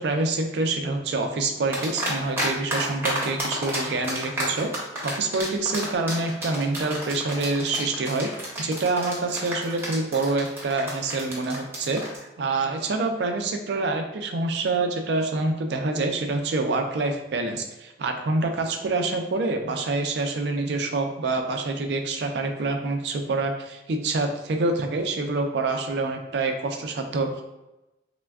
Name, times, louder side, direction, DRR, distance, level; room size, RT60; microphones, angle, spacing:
voice 1, 0.0-4.7 5.0-8.3 8.6-12.0 12.4-27.4, right 3 dB, 75° right, 5 dB, 0.4 m, -26 dB
sound 1, 1.7-2.5 2.7-12.2, right 1 dB, 15° right, 0.6 m, -30 dB
3.3 x 2.1 x 2.3 m, 0.98 s
head